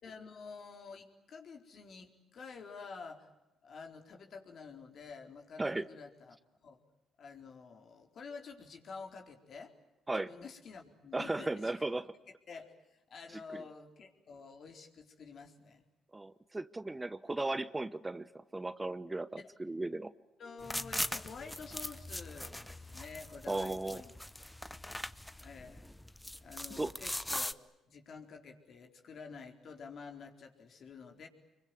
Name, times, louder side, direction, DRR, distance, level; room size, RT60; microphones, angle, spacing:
voice 1, 0.0-3.3 3.6-6.4 6.6-6.8 7.2-9.7 10.1-11.7 12.5-15.9 19.4-19.5 20.4-24.1 24.4-24.6 25.4-25.9 26.4-27.5 27.9-31.3, left 5 dB, 55° left, 3 dB, 4.1 m, -49 dB
voice 2, 11.1-12.1 13.5-13.6 16.1-20.1 23.5-24.0 26.8-26.9, right 2 dB, 15° right, 14 dB, 0.9 m, -36 dB
sound 1, 20.6-27.5, left 1 dB, 5° left, 1.0 m, -41 dB
25.5 x 23.5 x 9.3 m, 0.96 s
supercardioid pair, 70°, 0 cm